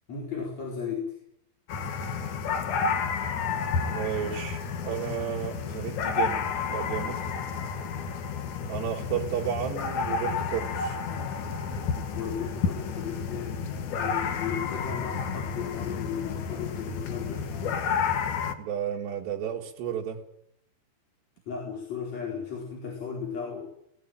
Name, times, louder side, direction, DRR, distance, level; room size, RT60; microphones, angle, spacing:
voice 1, 0.1-1.2 12.2-13.6 14.0-17.5 21.5-23.7, left 6 dB, 40° left, -2 dB, 5.4 m, -35 dB
sound 1, 1.7-18.5, left 5 dB, 55° left, 2.6 m, -31 dB
voice 2, 3.8-6.4 6.7-7.2 8.7-11.0 18.6-20.2, right 9 dB, 80° right, -1 dB, 4.2 m, -32 dB
sound 2, 11.1-17.8, left 9 dB, 85° left, 1.6 m, -43 dB
20.5 x 18.5 x 9.0 m, 0.73 s
omnidirectional pair, 4.8 m